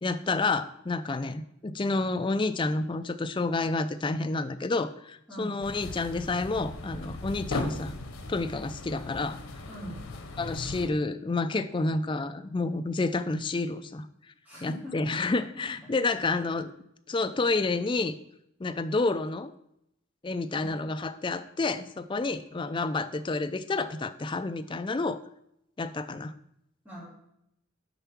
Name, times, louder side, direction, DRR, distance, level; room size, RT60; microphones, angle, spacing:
voice 1, 0.0-7.9 8.3-9.4 10.4-14.1 14.6-16.7 17.1-18.1 18.6-19.5 20.2-25.2 25.8-26.3, left 3 dB, 25° left, 10 dB, 0.4 m, -29 dB
sound 1, 5.6-10.9, left 2 dB, 90° left, 0.9 m, -38 dB
voice 2, 9.7-10.0 14.4-14.9 20.5-20.7 26.8-27.0, equal, 10° right, -8 dB, 3.4 m, -41 dB
6.8 x 4.6 x 6.0 m, 0.77 s
head